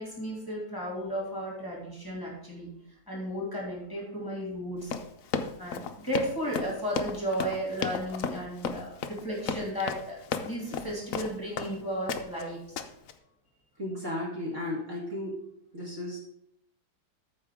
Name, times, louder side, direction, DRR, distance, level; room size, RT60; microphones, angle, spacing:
voice 1, 0.0-2.7 3.1-4.9 5.6-12.6, equal, 10° left, -4 dB, 2.3 m, -34 dB
Run, 4.8-11.7 12.1-12.4 12.8-13.1, left 6 dB, 65° left, 0.8 m, -33 dB
voice 2, 13.8-15.4 15.7-16.2, left 1 dB, 40° right, -5 dB, 2.1 m, -34 dB
14.0 x 5.1 x 3.6 m, 0.77 s
omnidirectional pair, 2.1 m